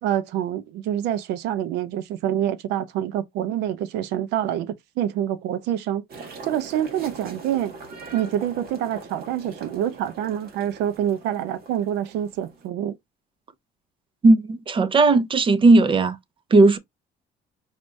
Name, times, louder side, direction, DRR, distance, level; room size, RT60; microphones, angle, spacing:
voice 1, 0.0-6.0 6.4-7.7 8.1-13.0, right 11 dB, 90° right, 0.6 m, -26 dB
sound 1, 6.1-12.7, right 3 dB, 65° right, 1.5 m, -42 dB
voice 2, 14.2-16.2 16.5-16.8, right 3 dB, 30° right, 0.6 m, -16 dB
4.9 x 2.6 x 3.2 m
cardioid pair, 110°, 17 cm